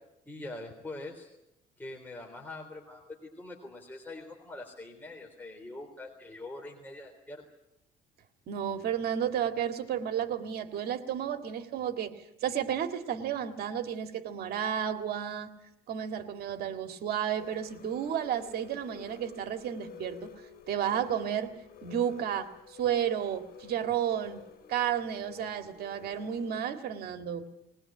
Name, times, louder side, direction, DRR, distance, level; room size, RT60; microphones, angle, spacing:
voice 1, 0.3-1.3 1.8-7.4, left 2 dB, 10° left, 1 dB, 3.6 m, -44 dB
voice 2, 8.5-15.5 15.9-20.3 20.7-27.5, right 9 dB, 70° right, 7 dB, 1.9 m, -32 dB
sound 1, 17.4-26.6, left 8 dB, 60° left, 3.5 m, -49 dB
21.0 x 20.0 x 8.9 m, 0.87 s
cardioid pair, 110°, 17 cm